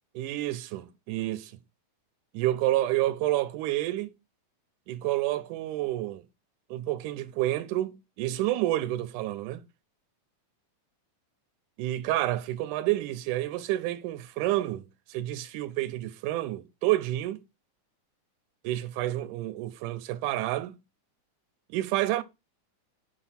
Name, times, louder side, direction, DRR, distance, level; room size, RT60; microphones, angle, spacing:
voice 1, 0.2-1.5 2.3-4.2 4.9-6.2 6.7-9.6 11.8-17.4 18.6-20.8 21.7-22.2, right 15 dB, 85° right, 2.1 m, -29 dB
6.6 x 3.4 x 5.6 m
omnidirectional pair, 3.6 m